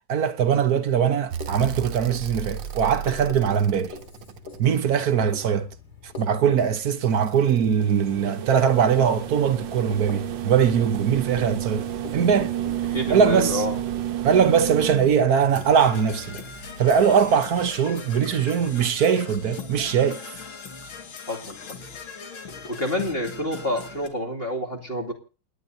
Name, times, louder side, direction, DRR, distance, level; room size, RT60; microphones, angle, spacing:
voice 1, 0.1-3.9 4.6-5.7 6.0-11.8 12.1-12.5 13.1-13.6 14.2-16.4 16.8-20.2, right 7 dB, 55° right, 1.4 m, -21 dB
Writing, 1.3-13.0, left 4 dB, 55° left, 4.1 m, -43 dB
sound 1, 1.3-5.5 6.8-18.0 19.5-19.6, right 10 dB, 70° right, 1.5 m, -33 dB
voice 2, 12.9-13.8 21.3-21.6 22.7-25.1, left 1 dB, 30° left, 2.8 m, -28 dB
Percussion / Brass instrument, 15.5-24.1, left 5 dB, 85° left, 2.9 m, -40 dB
28.5 x 11.0 x 2.8 m
omnidirectional pair, 2.1 m